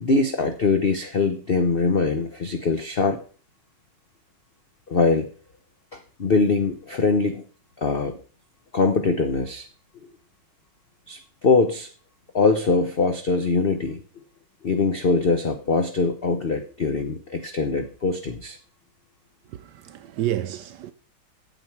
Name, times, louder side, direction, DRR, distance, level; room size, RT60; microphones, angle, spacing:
voice 1, 0.0-3.2 4.9-5.3 5.9-7.4 7.8-8.2 8.7-9.7 11.1-11.9 12.3-14.0 14.6-18.6, left 4 dB, 65° left, 0.5 m, -22 dB
voice 2, 19.5-20.9, right 13 dB, 75° right, 1.0 m, -30 dB
9.1 x 7.7 x 4.6 m
omnidirectional pair, 2.2 m